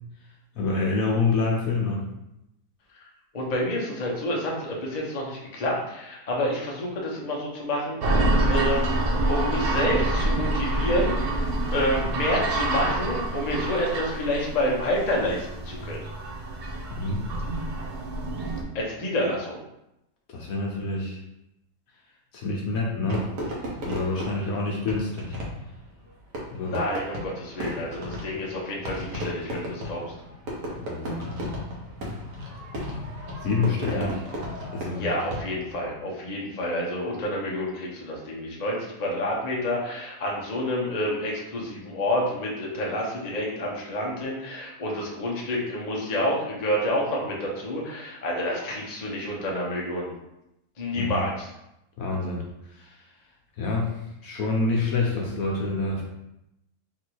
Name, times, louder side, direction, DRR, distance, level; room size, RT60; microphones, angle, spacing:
voice 1, 0.5-2.0 16.9-17.2 20.3-21.2 22.3-23.3 23.8-25.3 26.5-26.8 30.8-31.4 33.4-34.2 34.7-35.1 51.0-51.2 52.0-52.4 52.7-53.0 53.6-53.9 54.2-56.0, left 3 dB, 65° left, -2 dB, 1.2 m, -27 dB
voice 2, 3.3-8.9 9.3-16.0 18.7-19.6 26.6-30.0 33.9-34.1 34.9-50.1 50.8-51.5, left 1 dB, 35° left, -3 dB, 0.8 m, -28 dB
sound 1, 8.0-18.6, right 1 dB, 60° right, 0.6 m, -27 dB
Fireworks, 23.1-35.8, equal, 80° right, 1.5 m, -35 dB
3.8 x 2.6 x 4.6 m, 0.87 s
omnidirectional pair, 1.7 m